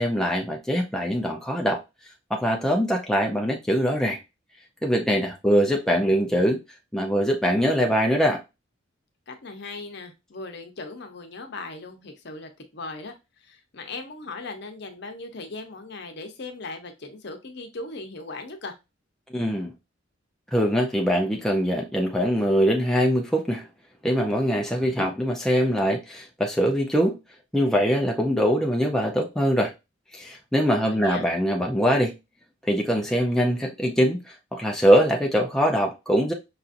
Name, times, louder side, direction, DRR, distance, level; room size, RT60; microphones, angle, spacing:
voice 1, 0.0-1.8 2.3-4.2 4.8-6.6 6.9-8.4 19.3-19.7 20.5-23.7 24.0-27.2 27.5-29.7 30.1-32.1 32.6-36.3, equal, 5° left, 0.5 m, -23 dB
voice 2, 9.3-18.7 30.8-31.3, left 3 dB, 55° left, 0.8 m, -38 dB
5.7 x 2.6 x 2.5 m
head